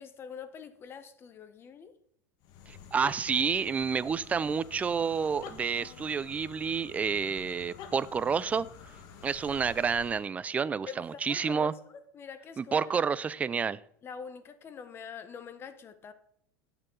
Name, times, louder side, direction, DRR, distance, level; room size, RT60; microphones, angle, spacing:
voice 1, 0.0-1.9 10.9-11.7 12.1-12.9 14.0-16.1, left 6 dB, 25° left, 1.0 m, -44 dB
sound 1, 2.4-10.3, left 6 dB, 50° left, 1.5 m, -48 dB
voice 2, 2.7-8.7 9.2-11.7 12.6-13.8, right 6 dB, 15° right, 0.4 m, -29 dB
12.0 x 9.0 x 3.8 m
supercardioid pair, 140°, 9 cm